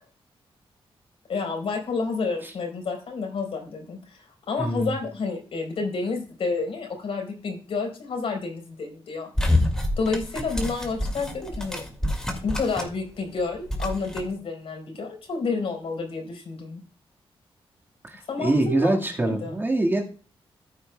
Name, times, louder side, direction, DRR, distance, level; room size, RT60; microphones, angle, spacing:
voice 1, 1.3-9.6 10.0-11.8 12.4-16.8 18.3-19.5, left 4 dB, 75° left, 3 dB, 4.1 m, -30 dB
voice 2, 4.6-5.0 18.0-20.0, right 2 dB, 20° right, 1 dB, 1.7 m, -24 dB
sound 1, 9.4-13.1 13.3-14.2, left 1 dB, 5° left, 1.9 m, -27 dB
14.5 x 8.6 x 2.2 m, 0.38 s
wide cardioid pair, 140°, 10 cm